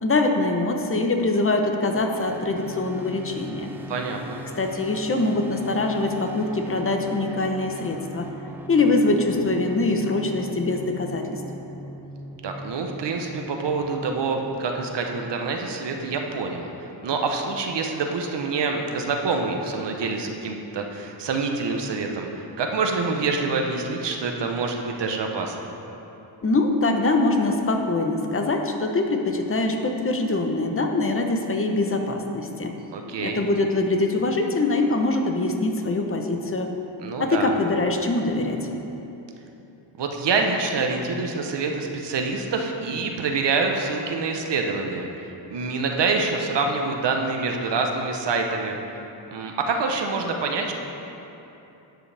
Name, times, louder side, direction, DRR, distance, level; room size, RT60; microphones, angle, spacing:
voice 1, 0.0-3.7 4.6-8.3 8.7-11.4 26.4-32.7 33.2-36.7 37.2-38.6, left 2 dB, 30° left, 4 dB, 0.9 m, -23 dB
sound 1, 1.9-15.5, right 1 dB, 5° right, 0.7 m, -41 dB
voice 2, 3.9-4.4 12.4-25.5 32.9-33.4 37.0-37.6 40.0-48.8 49.3-50.7, right 4 dB, 65° right, 3 dB, 0.9 m, -26 dB
11.5 x 8.1 x 3.4 m, 3.0 s
cardioid pair, 110°, 45 cm